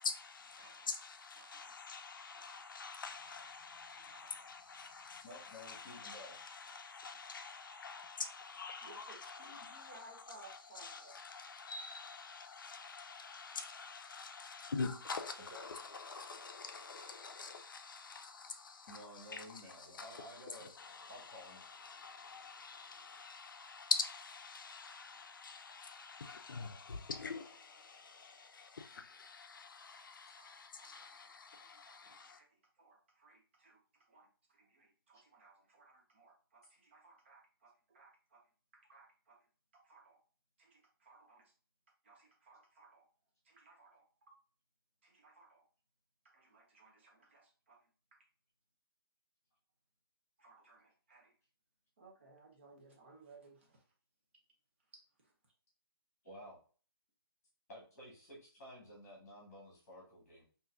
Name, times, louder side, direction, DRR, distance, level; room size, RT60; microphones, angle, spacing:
voice 1, 0.0-32.4, left 4 dB, 55° left, 0.5 m, -45 dB
voice 2, 0.6-0.9 1.4-1.8 2.3-2.6 3.2-3.3 3.9-4.5 6.6-6.8 7.0-7.6 7.9-8.2 8.8-11.1 24.9-25.5 30.3-38.5 38.7-39.5 39.7-40.2 40.6-41.5 42.0-43.1 43.4-44.4 45.0-45.6 46.2-48.2 50.4-51.3 52.0-53.8 54.9-55.3, right 3 dB, 30° right, 0.9 m, -62 dB
voice 3, 5.2-6.4 15.5-15.7 18.9-20.7 21.1-21.6 56.2-56.6 57.7-60.4, equal, 20° left, 1.3 m, -53 dB
3.7 x 2.7 x 2.4 m
hypercardioid pair, 170°, 13 cm